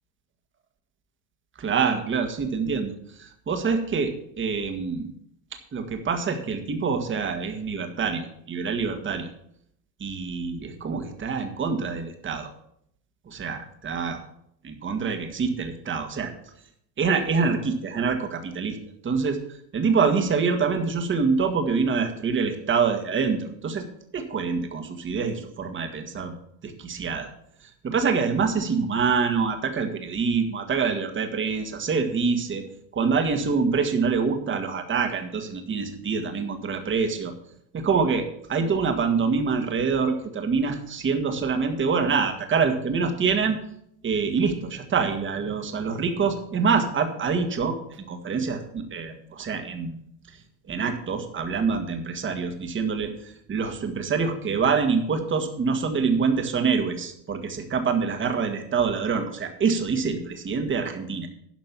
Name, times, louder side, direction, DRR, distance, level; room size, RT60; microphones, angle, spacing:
voice 1, 1.6-2.9 3.2-5.1 5.7-9.3 10.0-12.5 13.3-14.2 14.6-16.3 17.0-18.8 19.0-19.4 19.7-23.8 24.1-26.3 26.6-27.3 27.6-32.6 32.9-37.3 37.7-43.6 44.0-50.0 50.7-61.3, right 5 dB, 25° right, 6 dB, 1.7 m, -25 dB
12.0 x 5.3 x 7.3 m, 0.73 s
supercardioid pair, 110°, 49 cm